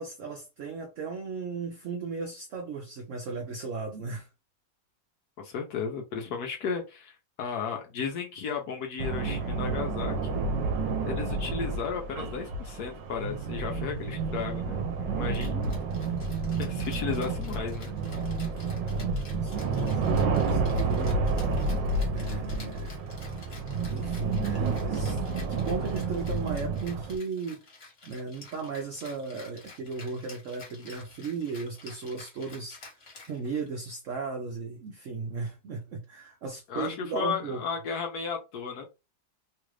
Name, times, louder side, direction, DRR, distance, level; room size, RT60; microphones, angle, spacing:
voice 1, 0.0-4.3 18.9-20.2 20.5-21.2 22.1-22.9 23.9-25.2 25.5-27.6 28.0-32.8 33.3-37.6, right 4 dB, 65° right, 0.8 m, -36 dB
voice 2, 5.4-10.5 11.1-15.7 16.6-17.9 36.7-39.0, left 6 dB, 70° left, 1.0 m, -34 dB
sound 1, 9.0-27.2, right 4 dB, 80° right, 1.3 m, -30 dB
Rattle (instrument), 15.3-33.8, left 3 dB, 45° left, 1.5 m, -50 dB
3.2 x 2.4 x 3.1 m
omnidirectional pair, 2.0 m